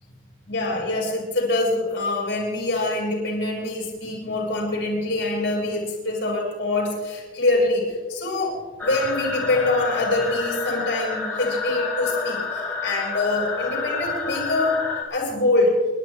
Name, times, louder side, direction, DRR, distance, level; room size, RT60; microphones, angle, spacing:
voice 1, 0.5-14.8 15.1-15.8, left 2 dB, 60° left, -3 dB, 5.9 m, -24 dB
sound 1, 8.8-15.0, left 4 dB, 10° left, 3.3 m, -29 dB
30.0 x 12.5 x 3.6 m, 1.4 s
head